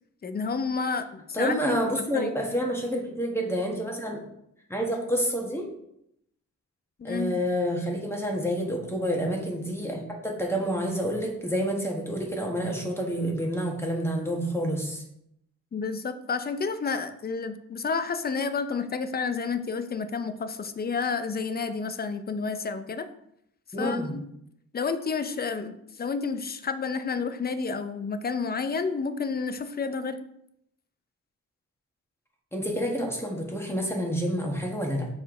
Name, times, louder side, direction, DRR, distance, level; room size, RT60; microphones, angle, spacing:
voice 1, 0.2-2.3 7.0-7.4 15.7-23.1 23.8-24.2 24.7-30.2, left 5 dB, 30° left, 10 dB, 0.5 m, -30 dB
voice 2, 1.3-4.2 4.7-5.7 7.0-15.0 23.7-24.1 32.5-35.1, equal, 10° left, 0 dB, 1.4 m, -28 dB
6.7 x 4.4 x 3.8 m, 0.77 s
cardioid pair, 100°, 30 cm